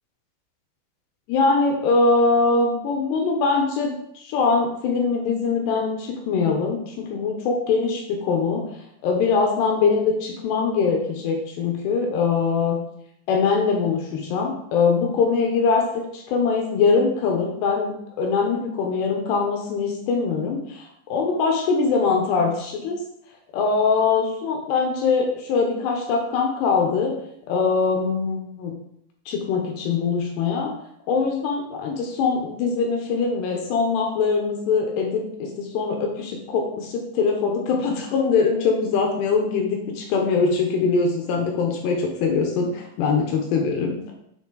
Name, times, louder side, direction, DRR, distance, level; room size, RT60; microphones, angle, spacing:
voice 1, 1.3-8.6 9.0-12.8 13.3-23.0 23.5-27.1 27.5-28.7 29.3-30.7 31.1-44.1, left 4 dB, 75° left, 1 dB, 2.6 m, -22 dB
7.3 x 6.0 x 3.9 m, 0.74 s
omnidirectional pair, 5.8 m